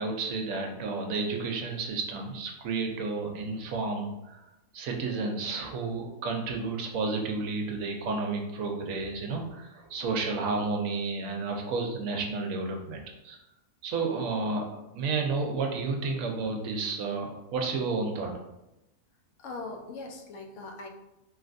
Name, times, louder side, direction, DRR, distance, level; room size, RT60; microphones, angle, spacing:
voice 1, 0.0-4.4 4.7-13.4 13.8-18.3, right 3 dB, 70° right, 2 dB, 1.0 m, -31 dB
voice 2, 19.4-20.9, left 3 dB, 65° left, 3 dB, 0.8 m, -40 dB
3.2 x 2.8 x 2.5 m, 0.93 s
omnidirectional pair, 1.5 m